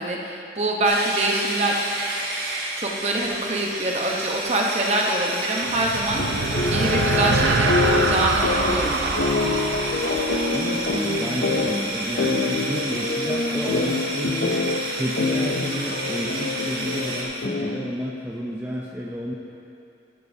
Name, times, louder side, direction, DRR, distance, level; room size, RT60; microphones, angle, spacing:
voice 1, 0.0-1.7 2.8-9.1, right 1 dB, 40° right, -1 dB, 1.0 m, -25 dB
sound 1, 0.8-17.2, right 2 dB, 60° right, 1.7 m, -31 dB
sound 2, 5.6-11.4, right 4 dB, 85° right, 0.5 m, -25 dB
sound 3, 6.2-18.0, left 4 dB, 75° left, 0.5 m, -26 dB
voice 2, 10.5-14.6 14.9-19.3, equal, 10° right, -4 dB, 0.6 m, -31 dB
12.0 x 11.5 x 2.7 m, 2.8 s
head